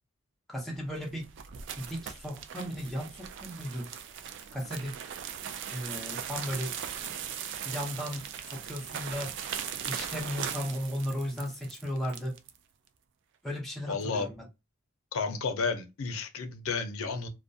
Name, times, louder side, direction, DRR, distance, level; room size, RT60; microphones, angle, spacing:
voice 1, 0.5-1.2 1.8-3.9 4.5-4.9 5.6-6.7 7.6-9.6 9.9-12.4 13.4-14.4, equal, ahead, 0.6 m, -36 dB
sound 1, 0.8-12.6, right 8 dB, 60° right, 0.3 m, -39 dB
Chink clink, 4.0-6.2 6.6-7.3 7.9-9.0 9.3-9.9 10.2-10.3 11.0-12.2 12.7-12.8, right 1 dB, 30° right, 1.1 m, -55 dB
voice 2, 13.9-14.3 15.1-17.3, left 4 dB, 90° left, 0.5 m, -32 dB
2.3 x 2.1 x 2.6 m
head